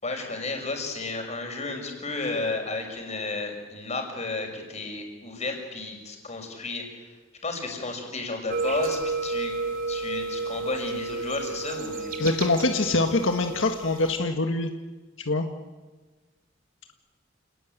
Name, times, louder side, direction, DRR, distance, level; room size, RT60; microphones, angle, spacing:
voice 1, 0.0-6.8 7.4-9.5 9.9-12.2, left 3 dB, 35° left, 3 dB, 6.1 m, -32 dB
sound 1, 8.5-14.2, right 3 dB, 50° right, 3.6 m, -32 dB
voice 2, 12.2-14.7 15.3-15.5, left 2 dB, 85° left, 5 dB, 1.7 m, -24 dB
29.0 x 19.5 x 9.1 m, 1.3 s
head